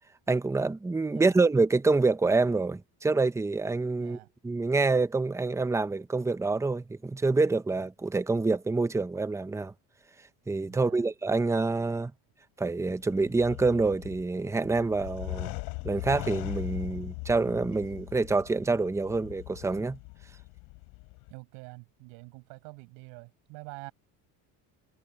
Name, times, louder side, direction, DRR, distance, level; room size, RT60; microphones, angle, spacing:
voice 1, 0.3-4.2 4.4-9.7 10.5-12.1 12.6-15.5 15.8-20.0, right 3 dB, 5° right, 0.7 m, -27 dB
voice 2, 4.0-4.3 10.7-11.0 21.3-23.9, right 32 dB, 85° right, 7.3 m, -46 dB
sound 1, 12.8-21.3, left 31 dB, 85° left, 5.6 m, -40 dB
cardioid pair, 125°, 43 cm